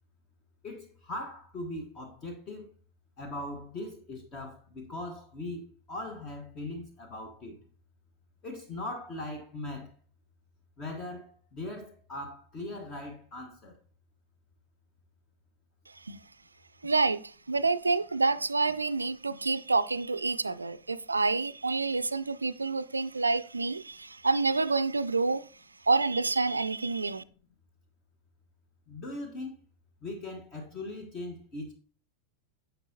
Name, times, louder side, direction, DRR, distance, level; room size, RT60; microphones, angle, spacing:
voice 1, 0.6-2.7 3.2-7.6 8.4-9.9 10.8-13.8 28.9-29.6 30.0-31.8, left 2 dB, 30° left, 1.2 m, -40 dB
voice 2, 16.8-25.5 25.9-27.2, right 3 dB, 80° right, 0.4 m, -28 dB
9.8 x 6.9 x 2.7 m
figure-of-eight pair, 90°, 0 cm